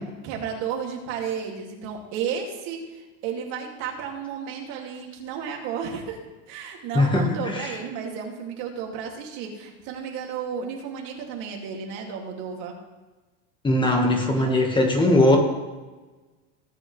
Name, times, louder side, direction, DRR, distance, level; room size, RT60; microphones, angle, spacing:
voice 1, 0.0-6.2 6.5-12.8 14.2-14.6, right 7 dB, 60° right, 0 dB, 2.5 m, -33 dB
voice 2, 6.9-7.8 13.6-15.4, left 1 dB, 15° left, 1 dB, 1.5 m, -20 dB
18.0 x 8.9 x 3.3 m, 1.2 s
supercardioid pair, 155°, 35 cm